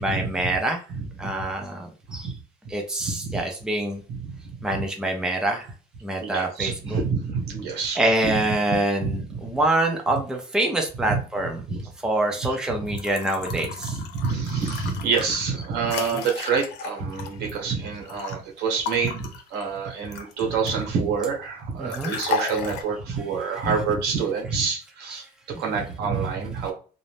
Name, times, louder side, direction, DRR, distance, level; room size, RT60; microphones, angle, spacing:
voice 1, 0.0-0.8 1.2-2.3 2.7-4.0 4.6-5.7 6.0-7.0 8.0-11.6 12.0-13.9 16.1-16.2 21.8-22.1 25.5-25.6, right 1 dB, 5° right, 1 dB, 0.5 m, -25 dB
voice 2, 0.9-1.3 2.1-2.4 3.0-3.4 4.1-4.4 4.7-4.8 6.2-8.4 9.0-9.5 11.1-11.2 11.7-11.9 12.4-12.6 12.8-13.0 13.6-25.2 25.6-26.7, right 5 dB, 80° right, 0 dB, 1.2 m, -27 dB
sound 1, 12.9-18.4 18.8-20.9 21.9-22.8, left 5 dB, 90° left, 0.5 m, -34 dB
2.6 x 2.0 x 3.3 m, 0.38 s
cardioid pair, 110°, 17 cm